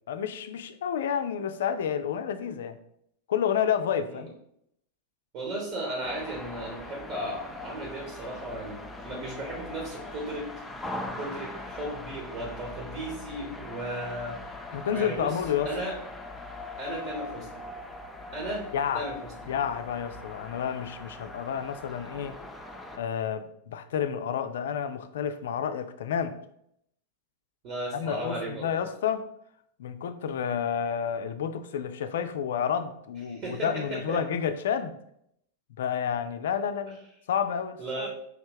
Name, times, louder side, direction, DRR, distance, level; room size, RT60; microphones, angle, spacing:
voice 1, 0.1-2.8 3.3-4.3 14.7-15.7 18.7-19.1 19.5-22.4 23.0-26.4 27.9-29.3 29.8-34.9 35.8-38.1, left 8 dB, 60° left, 0.4 m, -30 dB
voice 2, 5.3-10.5 11.2-14.4 14.9-15.3 15.6-16.0 16.8-17.6 18.3-18.7 18.9-19.5 27.6-28.8 33.3-34.2 37.8-38.1, right 1 dB, 40° right, 1.2 m, -35 dB
sound 1, 6.0-23.0, left 2 dB, 5° left, 0.6 m, -41 dB
5.0 x 3.2 x 3.1 m
figure-of-eight pair, 90°, 0 cm